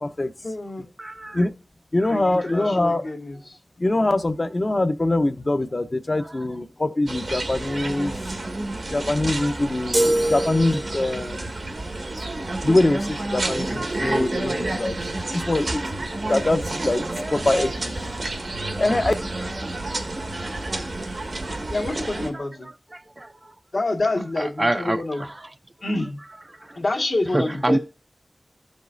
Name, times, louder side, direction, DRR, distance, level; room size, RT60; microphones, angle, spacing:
voice 1, 0.4-0.8 2.1-3.6 21.7-22.7 23.7-25.3 25.8-26.2 26.7-27.8, left 2 dB, 80° left, 1.7 m, -27 dB
voice 2, 1.0-1.5 2.0-2.2 2.6-2.7 6.2-6.3 9.7-10.1 15.2-15.3 19.8-20.0 20.4-20.6 21.4-21.5 23.2-23.3 24.4-25.3 27.3-27.8, right 1 dB, 35° right, 0.4 m, -27 dB
voice 3, 1.9-3.0 3.8-8.1 8.9-11.5 12.6-14.9 15.3-15.8 16.3-17.0 17.3-17.9 18.8-19.1, left 2 dB, 50° left, 0.7 m, -23 dB
sound 1, 7.1-22.3, right 2 dB, 90° right, 1.5 m, -30 dB
sound 2, 9.9-11.3, right 1 dB, 55° right, 0.8 m, -23 dB
15.5 x 5.3 x 2.6 m
wide cardioid pair, 55°, 0 cm